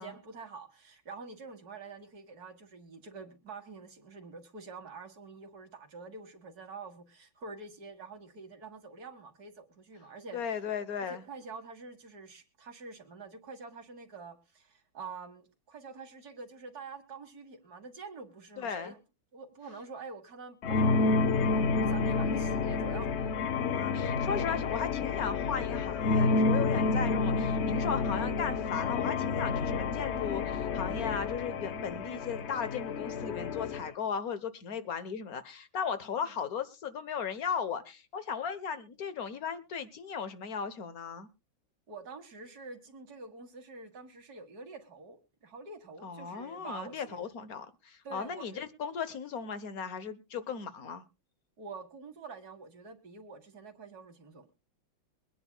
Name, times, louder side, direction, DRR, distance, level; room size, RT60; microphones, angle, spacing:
voice 1, 0.0-10.4 11.1-19.0 19.3-23.1 36.2-36.3 41.9-47.3 48.0-48.6 51.6-54.5, right 4 dB, 50° right, 2.2 m, -46 dB
voice 2, 10.3-11.2 18.6-18.9 23.5-41.3 46.0-51.0, left 6 dB, 55° left, 1.4 m, -36 dB
sound 1, 20.6-33.9, left 4 dB, 70° left, 0.6 m, -29 dB
23.0 x 10.0 x 2.3 m
omnidirectional pair, 2.1 m